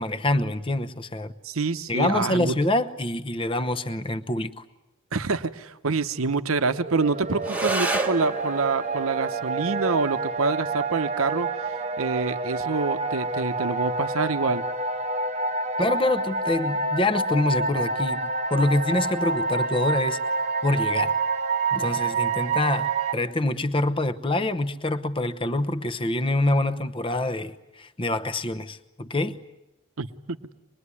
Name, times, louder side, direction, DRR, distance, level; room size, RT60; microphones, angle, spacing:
voice 1, 0.0-1.3 1.9-4.6 15.8-20.2 20.6-21.1 21.7-29.4, left 2 dB, 25° left, 0.9 m, -26 dB
voice 2, 1.4-2.6 5.1-11.5 12.0-14.6 30.0-30.1, right 4 dB, 75° right, 0.9 m, -26 dB
sound 1, 6.6-23.1, right 3 dB, 30° right, 1.0 m, -28 dB
sound 2, 7.4-16.4, right 2 dB, 5° right, 1.2 m, -35 dB
24.5 x 21.5 x 9.8 m
head